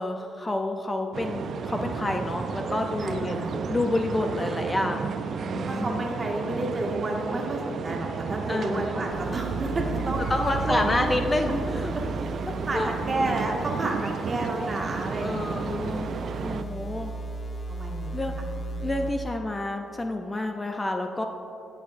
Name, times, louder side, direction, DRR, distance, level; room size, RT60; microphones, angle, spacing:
voice 1, 0.0-3.4 3.7-6.1 8.5-9.0 10.3-11.9 12.7-12.9 15.2-16.1 16.4-17.1 18.1-18.3 18.8-21.2, left 2 dB, 20° left, 4 dB, 0.5 m, -29 dB
sound 1, 1.1-16.6, right 6 dB, 55° right, 0.4 m, -32 dB
voice 2, 3.0-3.6 5.6-10.3 10.6-11.1 12.7-15.6 17.7-18.2, right 2 dB, 35° right, -1 dB, 1.7 m, -31 dB
sound 2, 9.1-19.1, right 2 dB, 40° left, 1.0 m, -36 dB
15.5 x 6.4 x 2.5 m, 2.9 s
cardioid pair, 90°, 0 cm